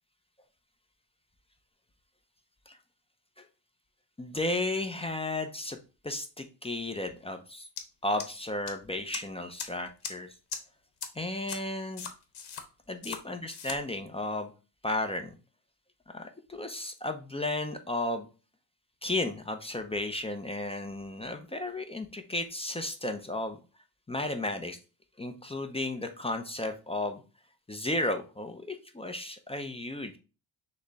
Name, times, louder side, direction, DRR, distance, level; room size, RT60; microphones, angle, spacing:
voice 1, 4.2-5.8 6.0-7.7 8.0-10.3 11.1-12.1 12.9-14.5 14.8-15.4 16.1-18.3 19.0-23.6 24.1-24.8 25.2-27.2 27.7-30.2, left 2 dB, 15° left, 6 dB, 0.4 m, -34 dB
sound 1, 7.8-7.9 8.2-8.7 9.1-9.2 9.6-9.7 10.0-10.1 10.5-10.6 11.0-11.1 11.5-11.6 12.0-12.6 13.0-13.2 13.5-13.8, left 6 dB, 60° left, 0.9 m, -37 dB
6.3 x 2.1 x 3.4 m, 0.33 s
cardioid pair, 125°, 44 cm